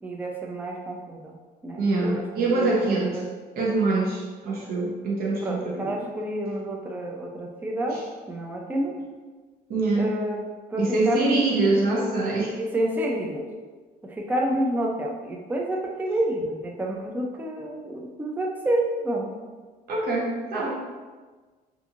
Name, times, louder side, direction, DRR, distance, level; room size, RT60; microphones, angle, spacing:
voice 1, 0.0-1.4 1.6-3.3 5.4-8.0 8.3-8.9 10.0-11.5 12.5-13.5 14.0-19.3, right 1 dB, 10° right, 0 dB, 0.3 m, -29 dB
voice 2, 1.8-3.2 3.5-5.9 7.9-8.0 9.7-10.1 10.8-12.5 19.9-20.7, right 2 dB, 60° right, -3 dB, 0.8 m, -24 dB
2.5 x 2.4 x 2.8 m, 1.4 s
cardioid pair, 110°, 17 cm